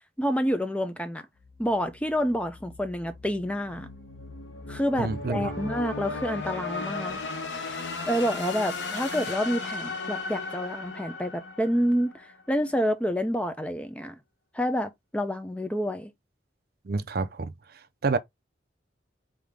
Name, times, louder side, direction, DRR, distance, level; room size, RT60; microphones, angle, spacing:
voice 1, 0.2-1.3 1.6-3.9 4.7-7.2 8.1-14.2 14.5-16.1, equal, 5° left, 0.6 m, -28 dB
sound 1, 1.4-12.4, left 3 dB, 80° left, 1.1 m, -36 dB
voice 2, 5.0-5.5 16.9-17.5 18.0-18.2, right 3 dB, 55° right, 0.5 m, -28 dB
5.0 x 2.8 x 3.5 m
head